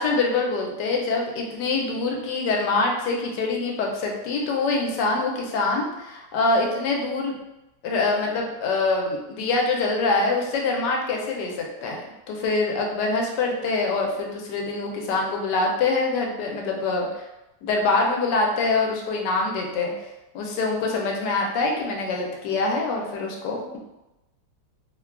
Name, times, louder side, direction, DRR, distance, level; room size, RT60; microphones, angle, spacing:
voice 1, 0.0-7.4 7.8-17.3 17.6-19.9 20.3-23.8, left 3 dB, 85° left, 0 dB, 1.2 m, -25 dB
3.0 x 2.2 x 2.3 m, 0.97 s
omnidirectional pair, 1.8 m